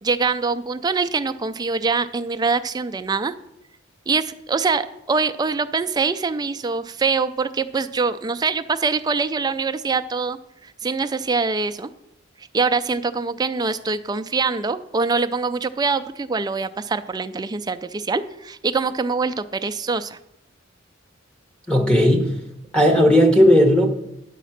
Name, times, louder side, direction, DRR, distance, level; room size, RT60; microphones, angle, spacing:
voice 1, 0.0-3.3 4.1-11.9 12.5-20.2, right 4 dB, 20° right, 10 dB, 0.4 m, -24 dB
voice 2, 21.7-22.4 22.7-23.9, equal, 5° left, 0 dB, 1.2 m, -15 dB
10.0 x 4.2 x 7.2 m, 0.83 s
head